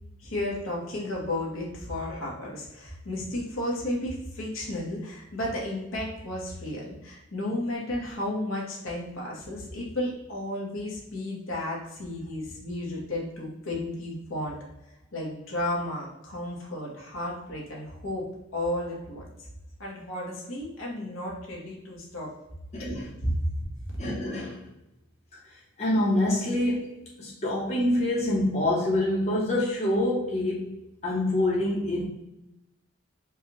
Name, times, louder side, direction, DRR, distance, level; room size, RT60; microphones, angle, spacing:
voice 1, 0.2-14.6 15.1-19.3 19.8-22.3 22.8-23.0 23.2-23.3 23.8-24.0, left 1 dB, 80° left, -3 dB, 1.2 m, -33 dB
voice 2, 22.7-23.1 24.0-24.7 25.8-32.1, left 1 dB, 35° left, -5 dB, 0.9 m, -26 dB
4.5 x 2.4 x 3.0 m, 0.89 s
head